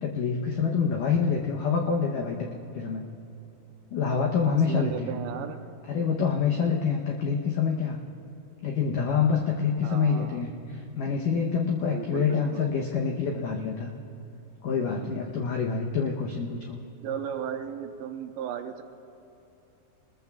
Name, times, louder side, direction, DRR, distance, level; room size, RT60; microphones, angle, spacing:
voice 1, 0.0-2.5 2.7-3.0 3.9-5.2 5.9-8.0 8.6-13.9 14.6-16.8, left 6 dB, 85° left, 1 dB, 1.8 m, -26 dB
voice 2, 4.4-5.6 9.8-10.5 11.8-12.8 15.0-15.4 17.0-18.8, right 9 dB, 85° right, 6 dB, 2.9 m, -36 dB
25.5 x 20.5 x 2.4 m, 2.9 s
omnidirectional pair, 5.0 m